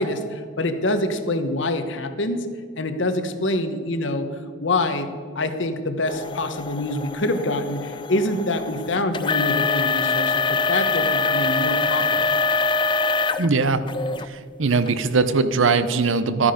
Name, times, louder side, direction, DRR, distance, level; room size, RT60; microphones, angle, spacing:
voice 1, 0.0-2.5 2.8-12.2, left 1 dB, 65° left, 8 dB, 1.1 m, -25 dB
sound 1, 6.1-13.5 13.9-14.3 14.9-15.0 15.6-15.7, left 4 dB, 25° left, 0.3 m, -24 dB
voice 2, 13.4-13.8 14.3-16.5, right 4 dB, 70° right, 12 dB, 0.7 m, -20 dB
13.5 x 9.8 x 5.1 m, 2.1 s
head